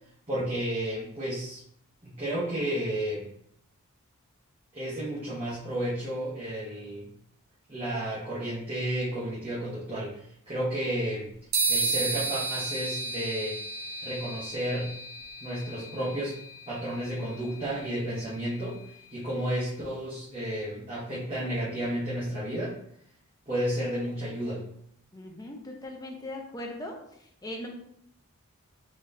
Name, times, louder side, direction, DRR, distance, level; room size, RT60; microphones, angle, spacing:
voice 1, 0.3-1.6 2.0-3.2 4.7-7.0 7.7-11.3 11.7-13.6 14.0-14.9 15.4-16.3 16.7-18.8 19.1-22.7 23.5-24.6, right 1 dB, 25° right, -10 dB, 1.1 m, -32 dB
sound 1, 11.5-19.2, right 3 dB, 60° right, 1.0 m, -33 dB
voice 2, 25.1-27.0 27.4-27.7, left 1 dB, 15° left, 1 dB, 0.5 m, -39 dB
3.9 x 3.1 x 2.6 m, 0.72 s
head